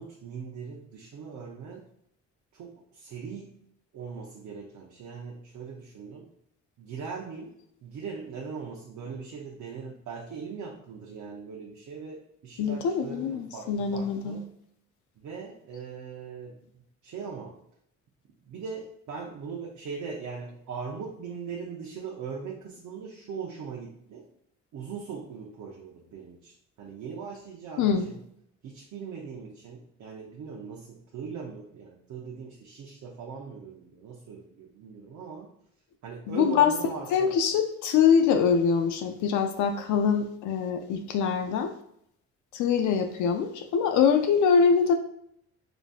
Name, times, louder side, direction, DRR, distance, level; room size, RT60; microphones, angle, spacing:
voice 1, 0.0-1.8 2.5-3.6 3.9-6.3 6.8-7.5 7.8-14.4 15.2-16.6 17.0-17.6 18.5-24.3 24.7-28.2 28.6-35.5 36.0-37.4, right 5 dB, 70° right, -2 dB, 0.8 m, -40 dB
voice 2, 12.6-14.4 27.8-28.0 36.3-36.7 37.1-41.7 42.5-44.9, left 6 dB, 80° left, 6 dB, 0.5 m, -24 dB
5.0 x 2.6 x 2.4 m, 0.72 s
cardioid pair, 90°, 30 cm